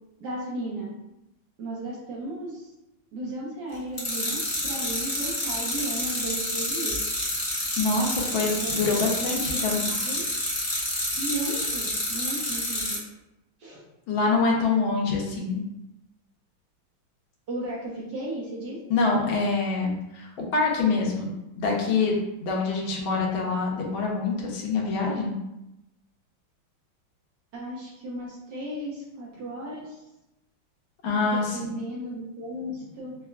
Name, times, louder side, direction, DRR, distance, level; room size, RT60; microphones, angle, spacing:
voice 1, 0.2-0.9 1.6-2.7 3.1-7.0 8.5-8.7 9.0-9.6 10.0-10.2 11.2-13.0 13.6-13.8 17.5-18.8 27.5-30.0 31.2-33.2, right 1 dB, 65° right, -4 dB, 1.3 m, -35 dB
sound 1, 4.0-13.0, left 1 dB, 55° left, 0.3 m, -29 dB
voice 2, 7.8-9.9 14.1-15.6 18.9-25.3 31.0-31.6, left 4 dB, 75° left, -2 dB, 1.5 m, -25 dB
5.0 x 2.3 x 2.3 m, 0.92 s
omnidirectional pair, 2.2 m